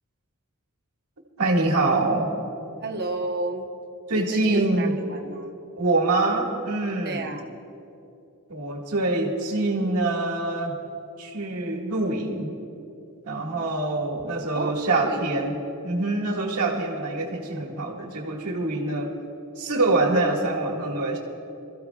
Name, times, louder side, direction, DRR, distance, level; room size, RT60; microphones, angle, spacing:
voice 1, 1.4-2.3 4.1-5.0 5.8-7.3 8.5-10.7 11.2-12.5 13.2-15.6 15.8-19.1 19.6-21.2, right 2 dB, 85° right, -1 dB, 1.9 m, -25 dB
voice 2, 2.8-3.7 4.1-5.5 7.0-7.5 14.5-15.2, right 2 dB, 45° right, 4 dB, 1.0 m, -32 dB
26.0 x 14.5 x 2.4 m, 2.7 s
head